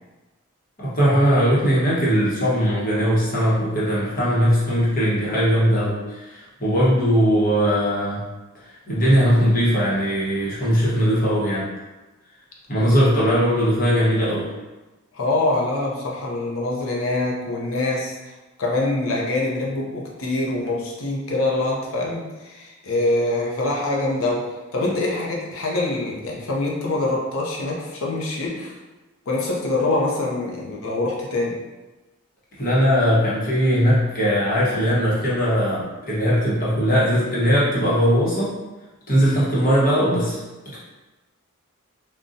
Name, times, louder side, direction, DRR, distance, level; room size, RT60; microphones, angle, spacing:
voice 1, 0.8-8.2 8.9-11.7 12.7-14.5 32.6-38.6 39.1-40.4, equal, 40° left, -7 dB, 0.9 m, -19 dB
voice 2, 15.1-18.2 18.6-28.7 29.3-31.6, left 2 dB, 70° left, -2 dB, 0.6 m, -24 dB
3.8 x 2.2 x 2.6 m, 1.1 s
head